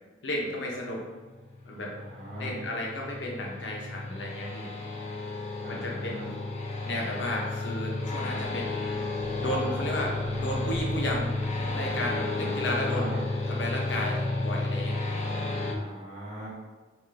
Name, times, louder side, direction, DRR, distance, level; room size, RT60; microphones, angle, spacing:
voice 1, 0.2-1.0 1.7-1.9 2.4-4.7 5.7-6.3 6.8-8.7 9.4-11.3 11.6-13.0 13.4-15.0, left 1 dB, 70° left, -2 dB, 0.7 m, -33 dB
sound 1, 1.0-15.7, left 2 dB, 35° left, 0.4 m, -32 dB
voice 2, 1.9-2.5 5.6-6.3 12.4-13.2 15.7-16.5, equal, 35° right, -8 dB, 1.2 m, -39 dB
sound 2, 7.8-14.1, left 1 dB, 80° right, 0.8 m, -45 dB
3.7 x 2.4 x 3.3 m, 1.3 s
head